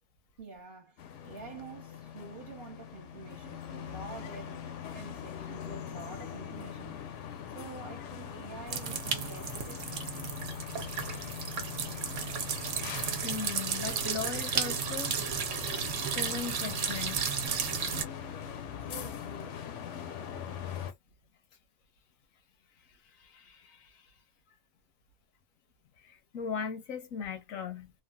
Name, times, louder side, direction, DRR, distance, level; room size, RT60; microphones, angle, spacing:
voice 1, 0.4-7.0 7.5-9.9 18.8-19.7, right 4 dB, 45° right, 1.0 m, -47 dB
sound 1, 1.0-20.9, left 8 dB, 70° left, 0.9 m, -42 dB
sound 2, 8.7-18.0, right 7 dB, 75° right, 1.0 m, -34 dB
voice 2, 13.2-15.2 16.1-17.2 23.0-24.1 26.0-27.9, left 6 dB, 90° left, 1.2 m, -38 dB
3.2 x 2.3 x 2.2 m
omnidirectional pair, 1.3 m